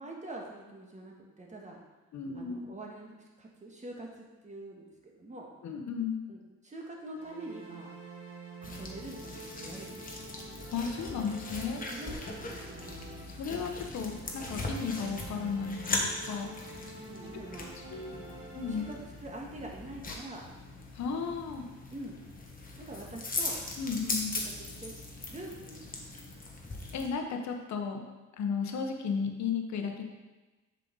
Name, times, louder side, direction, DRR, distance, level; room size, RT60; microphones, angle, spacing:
voice 1, 0.0-1.8 2.3-5.5 6.3-7.9 8.6-10.0 11.9-12.9 13.3-13.4 17.0-17.7 18.1-18.3 18.7-20.4 21.9-22.2 22.7-23.6 24.4-24.9 25.3-25.9, right 1 dB, 25° right, -1 dB, 1.6 m, -45 dB
voice 2, 2.1-2.7 5.6-6.2 10.7-11.8 13.4-16.5 17.3-17.4 17.8-18.1 18.5-18.8 20.9-21.7 23.8-24.3 26.9-28.0 28.4-30.0, left 6 dB, 65° left, 4 dB, 1.1 m, -34 dB
sound 1, 7.2-13.6 14.0-19.0, right 3 dB, 45° right, 1.6 m, -48 dB
sound 2, 8.6-27.1, left 2 dB, 30° left, 1.3 m, -40 dB
7.4 x 5.6 x 3.9 m, 1.2 s
cardioid pair, 90°, 30 cm